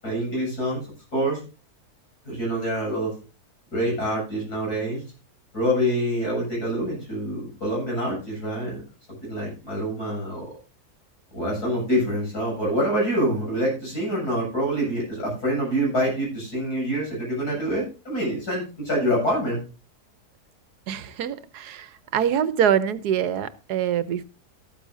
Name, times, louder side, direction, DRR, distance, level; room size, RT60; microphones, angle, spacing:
voice 1, 0.0-0.9 1.1-1.4 2.2-3.1 3.7-5.0 5.5-8.8 9.1-10.5 11.3-19.6, equal, 70° left, 8.4 m, -26 dB
voice 2, 20.9-21.9 22.1-24.2, right 9 dB, 80° right, 1.3 m, -24 dB
13.5 x 13.0 x 2.7 m
omnidirectional pair, 1.7 m